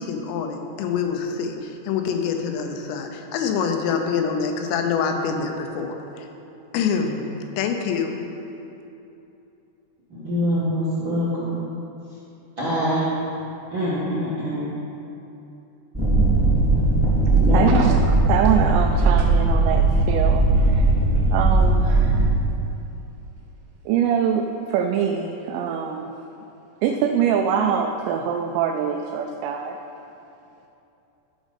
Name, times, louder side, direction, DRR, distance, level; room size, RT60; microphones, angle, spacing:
voice 1, 0.0-6.3 6.7-7.2 7.6-8.2, left 6 dB, 90° left, 4 dB, 3.1 m, -25 dB
voice 2, 10.1-11.6 12.6-13.2 13.7-14.7 17.4-17.8, equal, 55° right, -9 dB, 1.3 m, -24 dB
sound 1, 15.9-22.3, right 2 dB, 15° right, 1.0 m, -18 dB
voice 3, 17.5-20.9 21.3-22.3 23.9-26.1 26.8-29.8, right 7 dB, 85° right, 2 dB, 2.7 m, -24 dB
12.5 x 5.4 x 5.2 m, 2.9 s
omnidirectional pair, 5.0 m